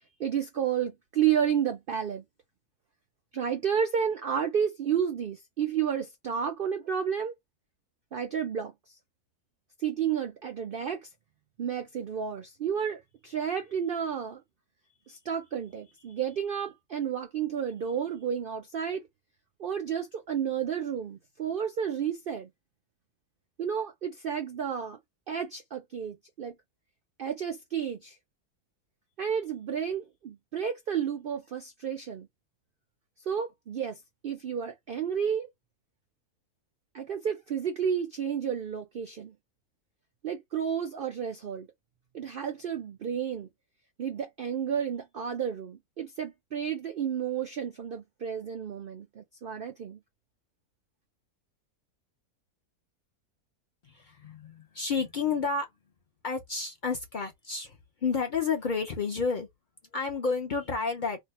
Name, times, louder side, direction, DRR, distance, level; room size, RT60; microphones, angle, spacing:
voice 1, 0.2-2.2 3.3-7.4 8.1-8.9 9.8-11.1 11.6-14.4 15.1-19.0 19.6-22.5 23.6-25.0 25.3-26.6 27.2-28.2 29.2-32.3 33.3-35.5 36.9-39.4 40.2-41.7 42.1-43.5 44.0-50.0, right 8 dB, 70° right, 0.5 m, -31 dB
voice 2, 53.8-55.7 56.2-59.5 59.9-61.2, left 5 dB, 65° left, 0.4 m, -30 dB
2.7 x 2.1 x 4.1 m
omnidirectional pair, 1.6 m